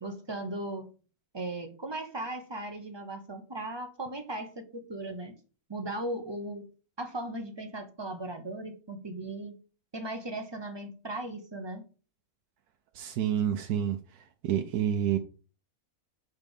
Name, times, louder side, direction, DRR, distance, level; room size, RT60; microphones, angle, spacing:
voice 1, 0.0-0.9 1.3-5.4 5.7-6.7 7.0-9.5 9.9-11.8, right 1 dB, 30° right, 0.5 m, -37 dB
voice 2, 12.9-15.2, right 10 dB, 85° right, 1.1 m, -29 dB
5.6 x 3.5 x 5.3 m
omnidirectional pair, 1.6 m